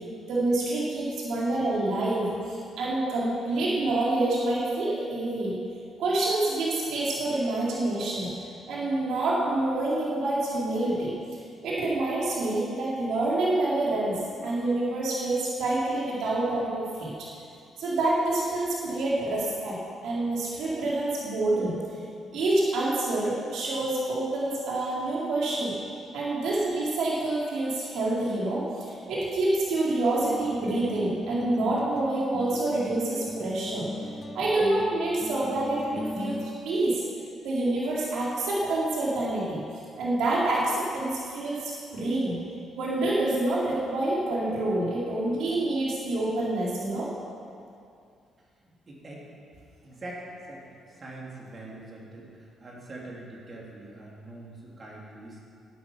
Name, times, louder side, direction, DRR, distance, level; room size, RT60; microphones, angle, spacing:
voice 1, 0.3-5.6 6.0-8.3 8.7-11.1 11.6-17.1 17.8-19.8 20.0-21.8 22.3-25.7 26.1-33.9 34.3-37.0 37.4-39.6 40.0-42.4 42.8-47.1, right 2 dB, 80° right, -6 dB, 4.0 m, -27 dB
sound 1, 30.2-36.6, left 2 dB, 25° left, 0.9 m, -38 dB
voice 2, 48.9-49.3 49.8-55.4, right 2 dB, 40° right, -3 dB, 3.2 m, -43 dB
12.0 x 9.4 x 7.3 m, 2.5 s
cardioid pair, 90°, 0 cm